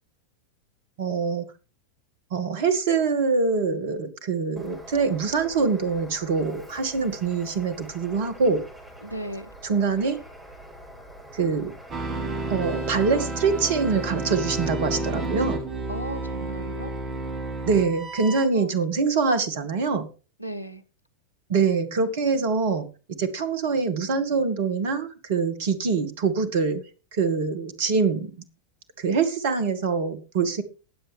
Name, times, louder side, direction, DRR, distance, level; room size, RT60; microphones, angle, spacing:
voice 1, 1.0-1.5 2.3-8.6 9.6-10.2 11.3-11.7 12.5-15.6 17.7-20.1 21.5-22.9 23.2-26.8 27.1-28.3 29.0-30.6, right 4 dB, 55° right, 11 dB, 2.0 m, -24 dB
Bird, 4.6-14.1, equal, 5° right, 6.1 m, -45 dB
voice 2, 9.0-9.5 15.9-16.9 18.5-18.8 20.4-20.8, right 1 dB, 90° right, 15 dB, 1.0 m, -35 dB
sound 1, 11.9-18.5, right 2 dB, 30° right, 2.2 m, -31 dB
19.0 x 7.8 x 3.5 m, 0.34 s
figure-of-eight pair, 90°, 0 cm